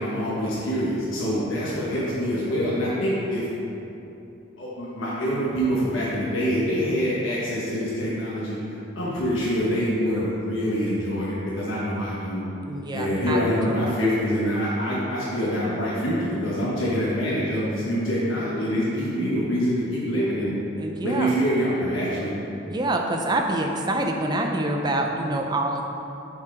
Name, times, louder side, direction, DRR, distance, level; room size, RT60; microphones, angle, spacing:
voice 1, 0.0-3.5 4.6-12.4 12.9-20.5 21.0-22.3, equal, 70° left, -7 dB, 1.2 m, -25 dB
voice 2, 12.7-13.8 20.8-21.3 22.7-25.8, right 1 dB, 20° right, 2 dB, 0.5 m, -26 dB
7.2 x 4.6 x 4.9 m, 2.9 s
head